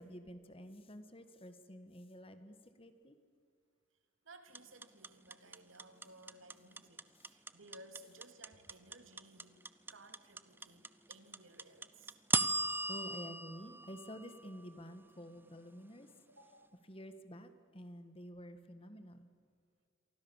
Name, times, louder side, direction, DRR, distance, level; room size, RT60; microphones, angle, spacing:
voice 1, 0.0-3.2 12.9-16.1 16.9-19.3, equal, 30° left, 9 dB, 1.8 m, -50 dB
voice 2, 4.2-9.6 9.9-12.2 16.3-16.7, right 2 dB, 90° right, 7 dB, 2.8 m, -58 dB
sound 1, 4.5-14.7, right 2 dB, 10° right, 0.7 m, -37 dB
28.5 x 24.0 x 7.4 m, 2.2 s
head